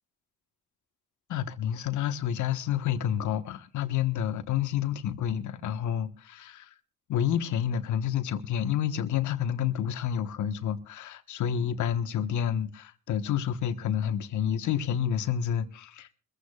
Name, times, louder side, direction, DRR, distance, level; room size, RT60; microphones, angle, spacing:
voice 1, 1.3-6.7 7.1-16.1, left 9 dB, 75° left, 1.4 m, -29 dB
23.0 x 15.0 x 2.4 m
cardioid pair, 90°, 30 cm